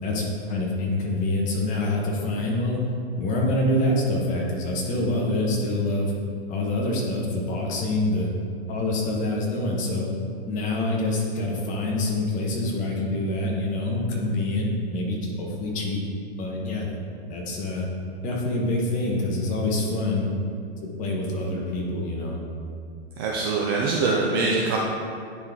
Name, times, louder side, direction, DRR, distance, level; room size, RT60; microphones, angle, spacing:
voice 1, 0.0-2.8 3.2-6.1 6.5-8.3 8.7-10.1 10.5-16.0 16.4-17.0 17.3-17.9 18.2-20.3 20.8-22.4, left 2 dB, 25° left, -2 dB, 1.1 m, -26 dB
voice 2, 23.2-24.8, right 3 dB, 20° right, -3 dB, 0.4 m, -23 dB
9.8 x 3.9 x 3.7 m, 2.4 s
hypercardioid pair, 145°, 34 cm